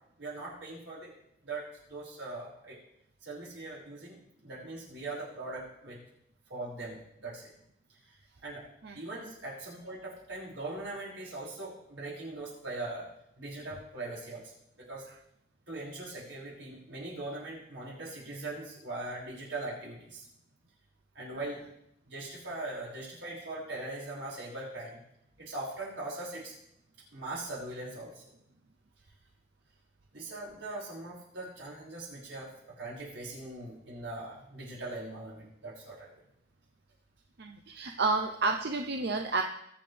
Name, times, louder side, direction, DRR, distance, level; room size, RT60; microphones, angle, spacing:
voice 1, 0.2-1.1 1.4-2.8 3.2-4.2 4.4-6.0 6.5-7.5 8.0-8.2 8.4-8.6 8.9-13.1 13.4-14.5 14.9-15.1 15.7-20.3 21.1-21.7 22.0-25.0 25.4-26.5 27.1-28.2 30.1-36.1, right 2 dB, 90° right, -5 dB, 5.9 m, -41 dB
voice 2, 37.4-39.4, right 3 dB, 65° right, 4 dB, 0.7 m, -30 dB
22.0 x 7.3 x 3.4 m, 0.75 s
head